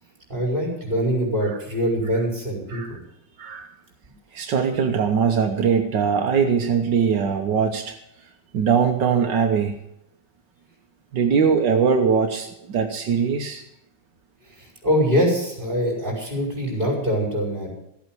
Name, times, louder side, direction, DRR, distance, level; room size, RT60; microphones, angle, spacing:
voice 1, 0.3-3.0 14.6-17.7, equal, 25° right, -1 dB, 5.6 m, -23 dB
voice 2, 4.3-8.0 8.5-9.8 11.1-13.6, right 6 dB, 80° right, 4 dB, 1.8 m, -21 dB
14.5 x 8.6 x 7.7 m, 0.79 s
omnidirectional pair, 1.9 m